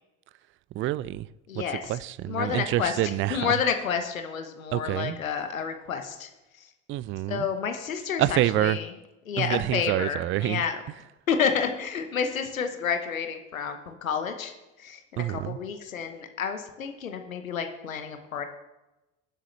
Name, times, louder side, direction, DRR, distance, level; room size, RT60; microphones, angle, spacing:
voice 1, 0.7-1.3 1.6-3.5 4.7-5.2 6.9-7.5 8.2-8.8 9.4-10.6 15.2-15.6, right 14 dB, 35° right, 0.4 m, -27 dB
voice 2, 1.5-1.8 2.3-2.9 3.3-6.3 6.6-6.7 7.3-8.9 9.3-10.8 11.3-14.5 14.8-18.4, left 7 dB, 90° left, 1.0 m, -30 dB
20.5 x 7.6 x 3.2 m
hypercardioid pair, 65°, 40 cm